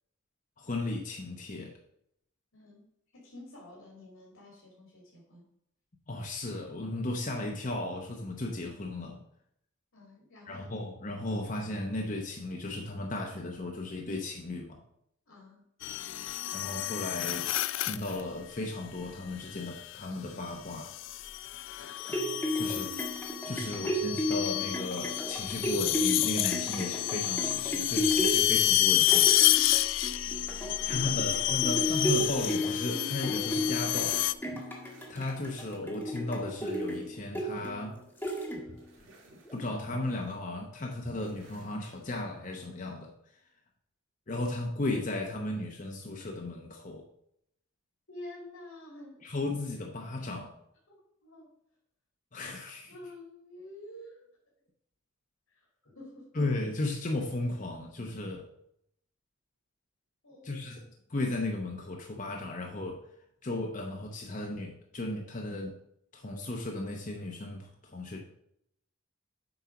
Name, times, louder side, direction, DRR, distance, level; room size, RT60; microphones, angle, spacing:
voice 1, 0.6-1.7 6.1-9.2 10.5-14.8 16.5-17.5 17.8-20.9 22.5-22.9 23.4-29.3 30.9-34.2 35.1-38.0 39.5-43.1 44.3-47.1 49.2-50.5 52.3-52.9 56.3-58.5 60.4-60.8 61.1-63.0 63.4-65.8 66.1-68.2, left 2 dB, 40° left, 1 dB, 0.9 m, -35 dB
voice 2, 2.5-2.9 3.1-5.5 9.9-10.7 15.3-15.6 22.6-22.9 30.2-31.1 48.1-49.3 50.9-51.6 52.9-54.3 55.5-56.3 60.2-60.9, left 1 dB, 80° left, -3 dB, 2.4 m, -49 dB
sound 1, 15.8-18.2 19.6-20.0 20.8-34.3, left 14 dB, 60° left, 0.3 m, -29 dB
sound 2, 21.8-38.9 39.5-39.6, equal, 10° left, 1.3 m, -34 dB
sound 3, 34.5-38.3 38.6-40.3 41.0-42.4, right 1 dB, 65° right, 2.2 m, -55 dB
7.9 x 4.5 x 5.8 m, 0.74 s
head